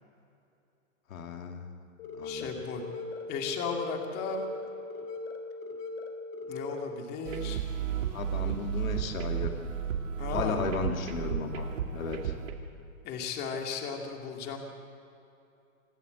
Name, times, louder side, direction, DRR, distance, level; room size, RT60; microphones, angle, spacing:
voice 1, 1.1-1.9 2.2-2.5 8.1-9.5 10.3-11.7 11.9-12.3, left 5 dB, 75° left, 4 dB, 2.5 m, -35 dB
sound 1, 2.0-7.0, left 3 dB, 45° left, 3.3 m, -39 dB
voice 2, 2.2-2.8 3.3-4.4 6.5-7.6 10.2-10.6 13.0-14.6, left 5 dB, 25° left, 2 dB, 2.2 m, -35 dB
sound 2, 7.2-12.5, right 8 dB, 65° right, 2.9 m, -33 dB
27.0 x 12.0 x 8.1 m, 2.7 s
hypercardioid pair, 155°, 41 cm